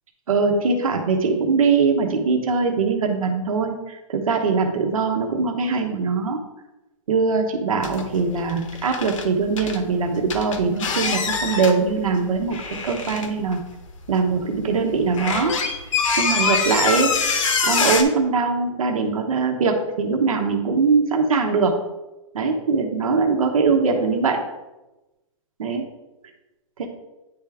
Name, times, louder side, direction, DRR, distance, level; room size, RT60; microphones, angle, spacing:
voice 1, 0.3-6.4 7.1-12.6 12.8-13.6 14.1-15.6 16.2-17.1 17.6-21.7 22.3-24.4 25.6-25.9 26.8-26.9, right 4 dB, 85° right, 2 dB, 1.0 m, -21 dB
sound 1, 7.8-8.2 8.4-9.8 10.3-11.8 12.4-13.6 14.1-14.2 14.7-18.0, left 5 dB, 70° left, 0.9 m, -24 dB
9.6 x 3.5 x 3.4 m, 1.0 s
hypercardioid pair, 155°, 17 cm